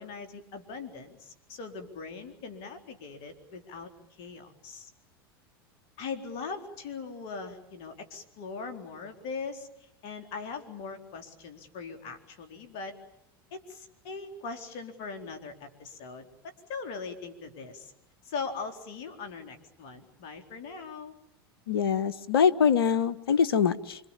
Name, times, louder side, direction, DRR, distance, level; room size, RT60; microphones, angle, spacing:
voice 1, 0.0-4.9 6.0-13.0 13.5-17.9 18.2-21.2, left 4 dB, 55° left, 6 dB, 4.2 m, -40 dB
voice 2, 21.7-24.0, left 7 dB, 80° left, 16 dB, 1.3 m, -24 dB
26.5 x 25.0 x 7.4 m, 0.78 s
hypercardioid pair, 90°, 12 cm